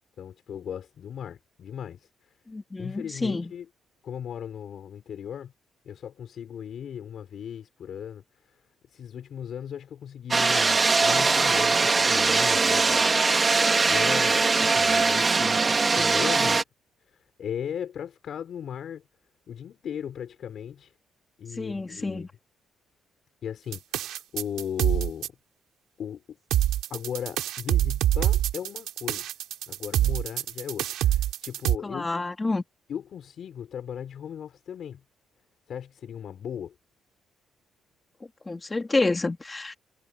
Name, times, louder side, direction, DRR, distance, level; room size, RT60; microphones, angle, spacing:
voice 1, 0.2-2.1 2.8-3.7 4.0-5.5 5.8-8.2 8.9-16.6 17.1-19.0 19.5-20.9 21.4-22.3 23.4-25.3 26.0-26.2 26.9-29.3 29.7-32.2 32.9-35.0 35.7-36.8, left 8 dB, 60° left, 5.8 m, -37 dB
voice 2, 2.5-3.5 21.6-22.3 31.8-32.6 38.5-39.8, left 3 dB, 20° left, 2.7 m, -28 dB
sound 1, 10.3-16.6, right 4 dB, 30° right, 2.8 m, -21 dB
sound 2, 23.7-25.3 26.5-31.8, right 12 dB, 85° right, 5.2 m, -25 dB
cardioid pair, 90°, 0 cm